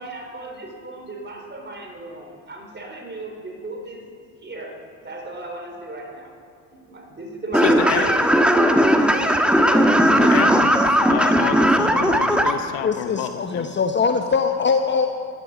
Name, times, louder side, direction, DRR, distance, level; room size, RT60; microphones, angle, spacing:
voice 1, 0.0-4.1 4.4-6.3 6.7-8.5 9.1-9.8, right 2 dB, 25° right, 2 dB, 4.2 m, -35 dB
voice 2, 7.5-8.1 10.1-10.8 11.1-13.7, left 11 dB, 70° left, 10 dB, 0.9 m, -29 dB
sound 1, 7.5-12.5, equal, ahead, 1.3 m, -17 dB
voice 3, 12.8-15.1, left 5 dB, 25° left, 6 dB, 0.9 m, -22 dB
16.5 x 12.5 x 5.1 m, 2.5 s
hypercardioid pair, 65°, 43 cm